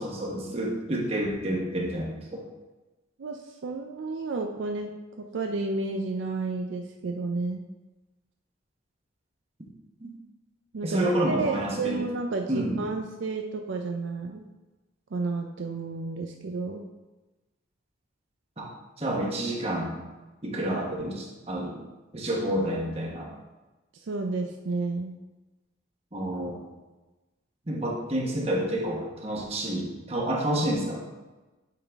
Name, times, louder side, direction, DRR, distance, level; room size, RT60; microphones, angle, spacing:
voice 1, 0.0-2.4 10.0-10.1 10.8-12.0 12.5-12.8 18.6-18.7 19.0-20.0 20.4-21.8 22.1-23.3 26.1-26.6 27.7-31.3, right 1 dB, 30° right, -2 dB, 1.1 m, -29 dB
voice 2, 3.2-4.9 5.2-7.6 10.7-14.5 15.1-16.9 23.9-25.2, right 3 dB, 65° right, 3 dB, 0.4 m, -31 dB
8.5 x 3.9 x 3.5 m, 1.2 s
head